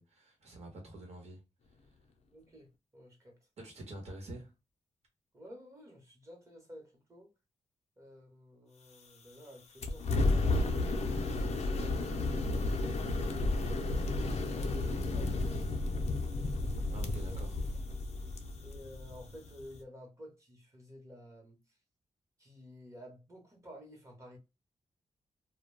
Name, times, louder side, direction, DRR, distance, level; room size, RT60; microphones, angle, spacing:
voice 1, 0.0-1.4 3.6-4.5 16.9-17.6 18.1-18.3, right 1 dB, 60° right, 1.0 m, -47 dB
voice 2, 2.3-3.4 5.3-7.3 8.0-12.7 13.2-16.2 17.2-17.4 18.3-21.6 22.4-24.4, equal, 25° right, 1.0 m, -53 dB
sound 1, 9.8-19.8, left 2 dB, 65° left, 0.5 m, -32 dB
2.2 x 2.2 x 3.1 m
wide cardioid pair, 115°, 12 cm